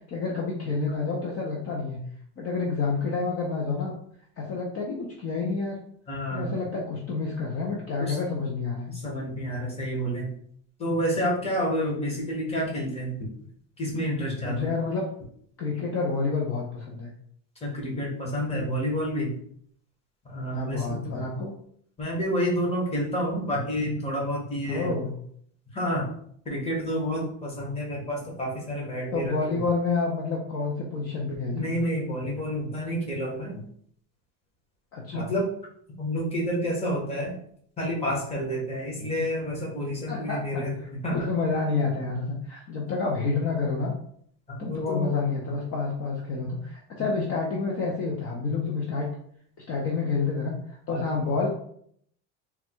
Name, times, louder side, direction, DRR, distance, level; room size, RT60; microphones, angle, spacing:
voice 1, 0.1-2.0 2.4-3.9 4.4-5.8 6.3-8.9 14.4-15.1 15.6-17.1 20.5-21.5 24.7-25.2 29.1-31.7 34.9-35.3 40.1-43.9 44.6-49.1 49.7-51.5, left 4 dB, 40° left, -2 dB, 0.7 m, -29 dB
voice 2, 6.1-6.5 8.0-8.2 8.9-10.3 10.8-13.2 13.8-14.7 17.6-19.4 20.2-21.4 22.0-24.9 25.7-26.1 26.4-29.6 31.5-33.6 35.1-35.5 36.0-37.3 37.8-40.7 41.0-41.3 44.5-45.1 50.9-51.1, equal, 15° left, -3 dB, 1.2 m, -29 dB
3.7 x 2.3 x 4.5 m, 0.64 s
cardioid pair, 160°, 37 cm